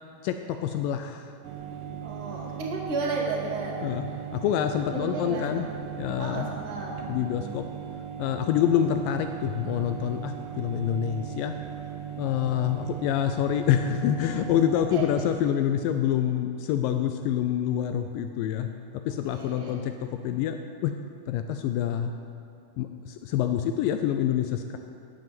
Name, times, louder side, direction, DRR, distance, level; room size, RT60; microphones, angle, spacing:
voice 1, 0.2-1.3 3.8-4.1 4.3-5.7 6.0-6.5 7.1-7.6 8.2-11.5 12.2-18.7 19.1-20.6 20.8-20.9 21.3-22.1 22.8-24.8, left 10 dB, 85° left, 7 dB, 2.0 m, -26 dB
sound 1, 1.4-15.3, right 8 dB, 80° right, 2.7 m, -38 dB
voice 2, 2.0-3.9 4.9-5.6 6.2-7.6 14.7-15.3 19.1-19.8, right 3 dB, 30° right, -5 dB, 2.0 m, -34 dB
11.0 x 7.6 x 7.7 m, 2.6 s
omnidirectional pair, 4.4 m